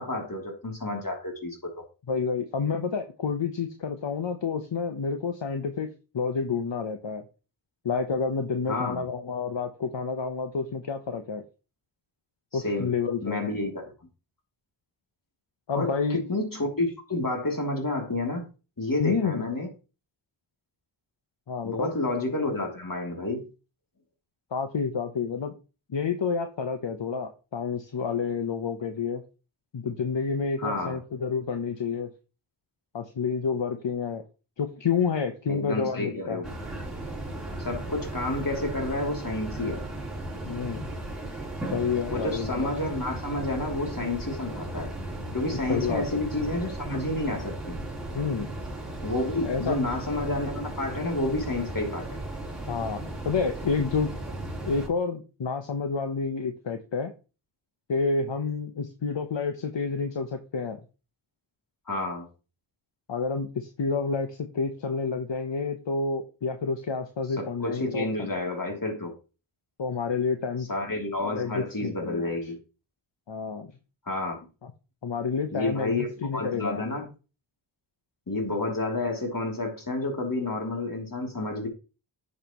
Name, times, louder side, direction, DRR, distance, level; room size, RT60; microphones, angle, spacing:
voice 1, 0.0-1.8 8.7-9.1 12.5-12.9 13.2-13.9 15.7-18.5 18.8-19.7 21.6-23.5 30.6-31.0 35.5-36.5 37.6-39.8 42.1-44.9 45.3-47.8 49.0-52.2 61.9-62.3 67.4-69.1 70.7-72.6 74.1-74.4 75.5-77.1 78.3-81.7, left 2 dB, 45° left, 1 dB, 3.0 m, -30 dB
voice 2, 2.1-5.9 6.1-7.2 7.8-11.4 12.5-13.4 15.7-16.2 19.0-19.4 21.5-21.9 24.5-25.5 25.9-29.2 29.7-32.1 32.9-34.2 34.6-36.4 40.4-40.9 41.7-42.7 45.7-46.2 48.1-48.5 49.4-49.8 52.7-54.1 54.7-57.1 57.9-60.8 63.1-68.1 69.8-70.7 71.3-72.3 73.3-73.7 75.0-76.8, left 5 dB, 70° left, 6 dB, 1.0 m, -29 dB
sound 1, 36.4-54.9, right 1 dB, ahead, 3.7 m, -36 dB
11.0 x 6.7 x 3.0 m, 0.33 s
cardioid pair, 40°, 46 cm